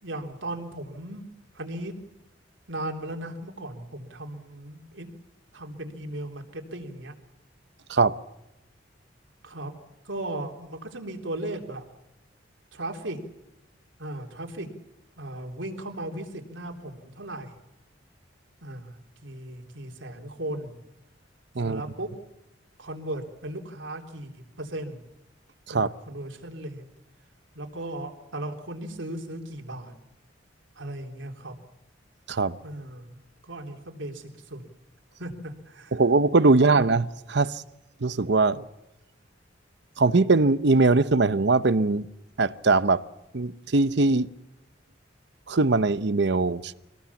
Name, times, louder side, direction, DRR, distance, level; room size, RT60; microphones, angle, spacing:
voice 1, 0.0-1.2 1.5-2.0 2.7-5.1 5.5-7.1 9.4-9.8 10.1-11.8 12.7-13.2 14.0-14.7 15.2-17.6 18.6-18.9 19.2-20.7 21.6-22.1 22.8-25.0 25.7-26.8 27.5-30.0 30.8-31.5 32.6-33.2 33.5-34.6 35.2-36.0 36.6-36.8, right 1 dB, 90° right, 3.5 m, -36 dB
voice 2, 35.9-37.6 38.0-38.6 40.0-42.1 42.4-43.0 43.3-44.3 45.5-46.7, right 3 dB, 65° right, 0.8 m, -21 dB
25.5 x 19.0 x 7.2 m
head